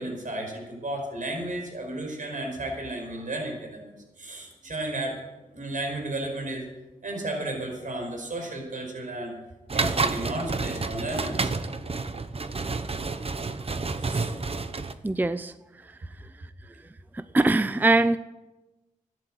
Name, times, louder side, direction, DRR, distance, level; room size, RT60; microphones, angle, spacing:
voice 1, 0.0-5.2 5.5-6.6 7.0-9.3 9.7-11.5 14.0-14.3, right 1 dB, 65° right, 1 dB, 5.2 m, -33 dB
sound 1, 9.7-14.9, right 4 dB, 45° right, 1.1 m, -29 dB
voice 2, 15.0-15.5 17.1-18.2, right 2 dB, 10° right, 13 dB, 0.5 m, -22 dB
14.0 x 10.5 x 7.8 m, 1.1 s
cardioid pair, 60°, 15 cm